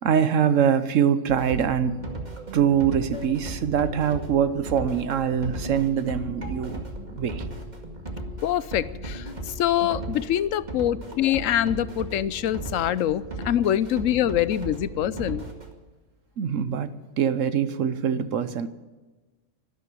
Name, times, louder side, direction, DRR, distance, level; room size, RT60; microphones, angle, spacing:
voice 1, 0.0-2.0 2.5-7.5 16.4-18.7, right 8 dB, 85° right, 1.2 m, -24 dB
sound 1, 1.3-15.7, right 2 dB, 35° right, 2.1 m, -36 dB
voice 2, 8.4-9.3 9.6-15.4, left 11 dB, 90° left, 1.1 m, -24 dB
12.5 x 12.5 x 9.2 m
omnidirectional pair, 1.3 m